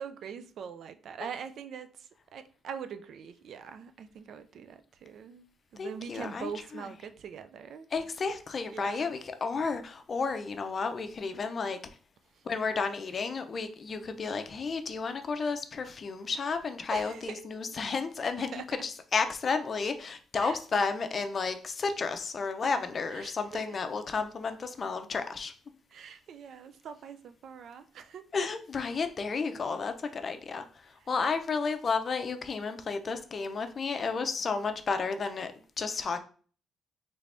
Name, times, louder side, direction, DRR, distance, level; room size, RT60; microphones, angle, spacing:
voice 1, 0.0-5.5 5.7-7.9 8.7-9.1 12.3-12.4 16.9-17.5 18.5-18.6 20.4-20.6 23.1-23.8 25.9-28.2, right 7 dB, 65° right, 0.3 m, -43 dB
voice 2, 5.8-6.5 6.8-6.9 7.9-11.8 12.4-25.5 28.3-36.2, left 4 dB, 45° left, 0.4 m, -32 dB
3.3 x 3.3 x 2.5 m
cardioid pair, 90°, 0 cm